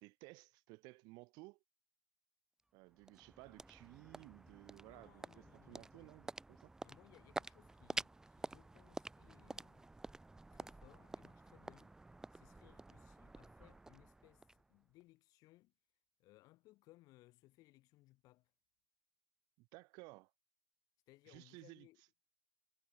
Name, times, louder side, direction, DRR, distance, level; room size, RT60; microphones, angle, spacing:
voice 1, 0.0-1.6 2.7-6.7 19.6-20.3 21.3-21.9, right 25 dB, 60° right, 1.1 m, -57 dB
sound 1, 2.6-15.0, right 2 dB, 5° right, 0.6 m, -50 dB
voice 2, 4.8-6.3 6.8-9.9 10.5-15.7 16.2-18.5 21.1-22.0, left 19 dB, 50° left, 2.5 m, -66 dB
supercardioid pair, 130°, 8 cm